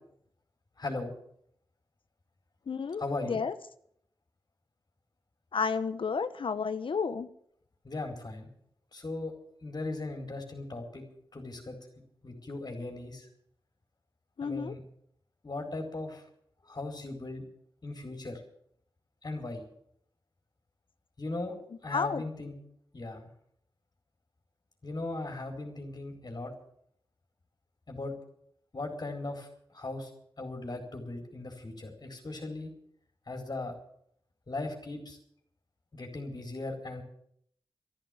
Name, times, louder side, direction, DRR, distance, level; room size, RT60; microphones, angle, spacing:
voice 1, 0.8-1.1 3.0-3.4 7.8-8.5 8.9-9.3 9.6-11.0 11.3-11.8 12.2-13.3 14.4-14.8 15.4-16.2 16.7-17.4 17.8-18.4 19.2-19.6 21.2-21.5 21.8-22.5 22.9-23.3 24.8-26.5 27.9-28.1 28.7-29.5 29.7-30.1 30.4-32.7 33.3-33.7 34.5-35.2 35.9-37.0, left 2 dB, 45° left, 2 dB, 4.3 m, -38 dB
voice 2, 2.7-3.5 5.5-7.3 14.4-14.7 21.9-22.2, left 5 dB, 65° left, 12 dB, 1.1 m, -31 dB
13.5 x 11.5 x 9.1 m, 0.68 s
cardioid pair, 45°, 9 cm